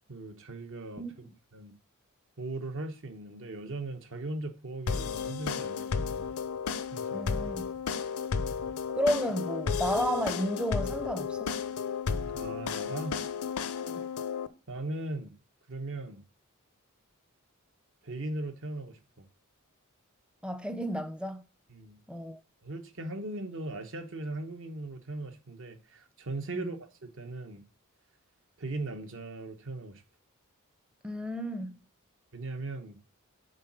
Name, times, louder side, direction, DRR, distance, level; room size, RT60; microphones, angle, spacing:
voice 1, 0.1-1.7 2.4-6.3 6.9-7.3 12.3-13.2 14.7-15.3 15.7-16.2 18.0-19.3 21.7-22.0 22.6-27.6 28.6-30.0 32.3-33.0, right 2 dB, 60° right, 1.0 m, -39 dB
voice 2, 1.0-1.3 7.1-7.7 9.0-11.5 13.9-14.1 20.4-21.4 22.1-22.4 26.5-26.7 31.0-31.8, equal, 5° right, 0.5 m, -32 dB
sound 1, 4.9-14.5, left 6 dB, 75° left, 0.5 m, -33 dB
6.7 x 4.1 x 5.9 m
head